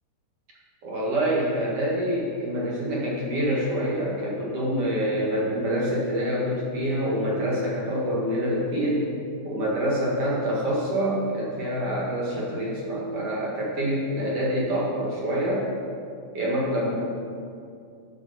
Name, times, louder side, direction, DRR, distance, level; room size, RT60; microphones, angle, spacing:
voice 1, 0.8-9.1 9.4-15.6 16.3-17.0, equal, 55° right, -6 dB, 1.7 m, -26 dB
12.5 x 7.5 x 4.2 m, 2.4 s
omnidirectional pair, 5.5 m